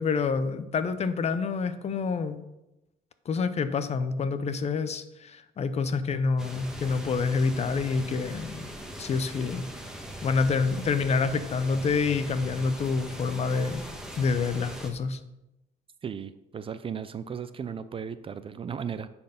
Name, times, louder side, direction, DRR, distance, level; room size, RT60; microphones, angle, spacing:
voice 1, 0.0-2.4 3.3-8.7 9.0-9.7 10.2-13.8 14.2-15.2, left 4 dB, 40° left, 12 dB, 0.7 m, -27 dB
sound 1, 6.4-14.9, right 1 dB, 5° right, 1.4 m, -41 dB
voice 2, 16.0-19.1, right 7 dB, 35° right, 13 dB, 0.5 m, -36 dB
10.0 x 4.4 x 5.7 m, 0.93 s
cardioid pair, 110°, 17 cm